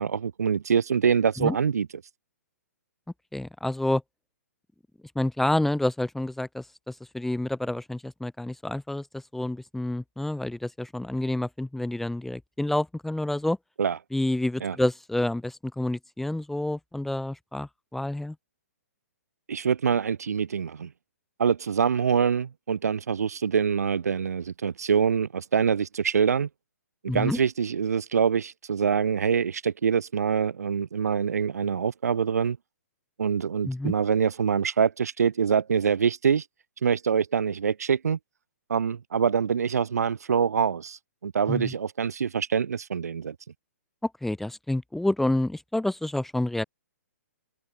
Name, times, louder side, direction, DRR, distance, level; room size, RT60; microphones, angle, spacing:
voice 1, 0.0-1.9 13.8-14.0 14.6-14.8 19.5-20.9 21.4-26.5 27.1-32.6 33.2-36.4 36.8-38.2 38.7-43.3, right 7 dB, 75° right, 1.2 m, -25 dB
voice 2, 3.3-4.0 5.2-13.6 14.1-18.3 27.1-27.4 33.6-33.9 41.5-41.7 44.0-46.6, left 1 dB, 5° left, 0.8 m, -28 dB
open air
hypercardioid pair, 135°, 9 cm